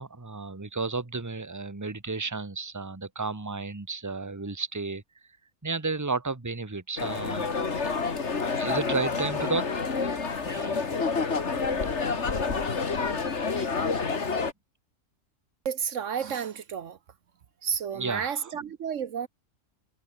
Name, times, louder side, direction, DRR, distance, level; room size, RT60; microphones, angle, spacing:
voice 1, 0.0-5.0 5.6-8.1 8.6-9.7 10.4-11.0 17.9-18.5, right 4 dB, 15° right, 1.3 m, -33 dB
sound 1, 7.0-14.5, left 4 dB, 60° left, 2.3 m, -28 dB
voice 2, 15.6-17.0 17.6-19.3, right 7 dB, 70° right, 1.2 m, -31 dB
omnidirectional pair, 1.4 m